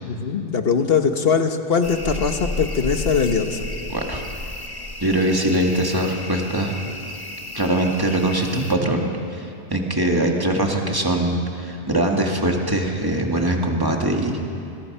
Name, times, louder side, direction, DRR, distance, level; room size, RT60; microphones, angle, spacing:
voice 1, 0.0-3.7, left 6 dB, 55° left, 7 dB, 1.4 m, -21 dB
sound 1, 1.8-8.8, left 1 dB, 20° left, 1.2 m, -33 dB
voice 2, 3.9-4.2 5.0-6.7 7.5-14.4, right 1 dB, 20° right, 1 dB, 2.2 m, -22 dB
26.0 x 21.5 x 5.6 m, 2.6 s
omnidirectional pair, 1.2 m